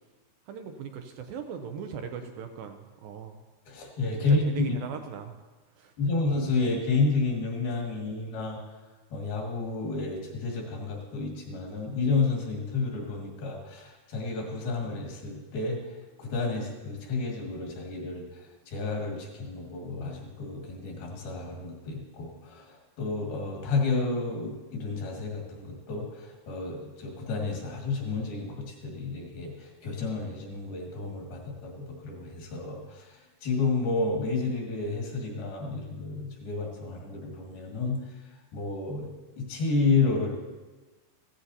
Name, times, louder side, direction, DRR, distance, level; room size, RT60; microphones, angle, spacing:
voice 1, 0.5-3.4 4.5-5.3 5.8-5.9, right 7 dB, 80° right, 6 dB, 2.2 m, -38 dB
voice 2, 3.7-4.4 6.0-8.6 9.1-15.8 16.2-38.0 38.5-39.1 39.4-40.3, left 3 dB, 70° left, -1 dB, 3.8 m, -30 dB
15.0 x 15.0 x 2.8 m, 1.2 s
omnidirectional pair, 4.5 m